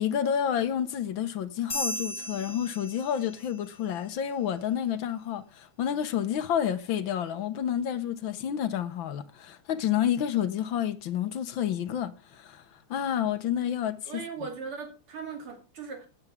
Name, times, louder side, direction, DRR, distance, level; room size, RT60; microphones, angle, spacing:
voice 1, 0.0-12.6 12.9-14.2, left 9 dB, 70° left, 1.6 m, -29 dB
sound 1, 1.7-3.6, equal, 20° left, 2.3 m, -36 dB
voice 2, 14.1-16.1, right 5 dB, 80° right, 3.6 m, -38 dB
17.0 x 8.2 x 3.6 m
omnidirectional pair, 2.4 m